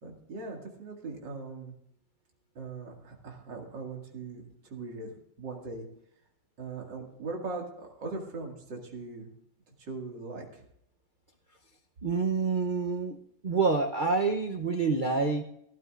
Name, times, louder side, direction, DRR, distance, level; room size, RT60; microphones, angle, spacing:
voice 1, 0.0-1.7 2.5-5.9 6.6-9.3 9.8-10.6, right 3 dB, 70° right, 0 dB, 2.9 m, -40 dB
voice 2, 12.0-13.2 13.4-15.4, right 4 dB, 55° right, 2 dB, 0.5 m, -27 dB
17.5 x 12.5 x 2.5 m, 0.76 s
omnidirectional pair, 2.0 m